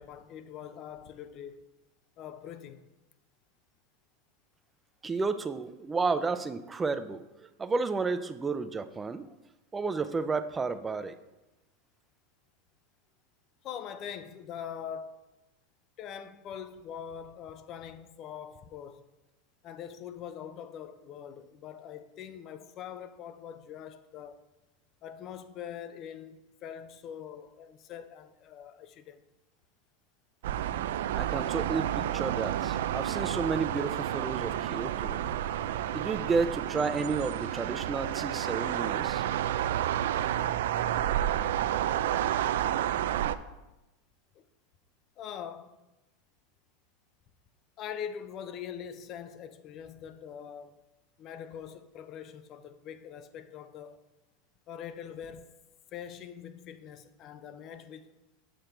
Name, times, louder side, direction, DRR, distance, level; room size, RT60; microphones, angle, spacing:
voice 1, 0.0-1.6 2.2-2.9 13.6-15.4 16.0-19.0 19.6-24.4 25.0-29.2 44.3-44.5 45.2-45.8 47.8-50.8 51.2-54.0 54.7-55.6 55.9-58.1, left 8 dB, 40° left, 0.6 m, -43 dB
voice 2, 5.0-7.2 7.6-9.2 9.7-11.2 31.1-35.2 35.9-39.3, right 4 dB, 15° right, 0.5 m, -31 dB
sound 1, 30.4-43.4, right 11 dB, 80° right, 0.4 m, -30 dB
7.6 x 6.5 x 4.5 m
supercardioid pair, 125°, 0 cm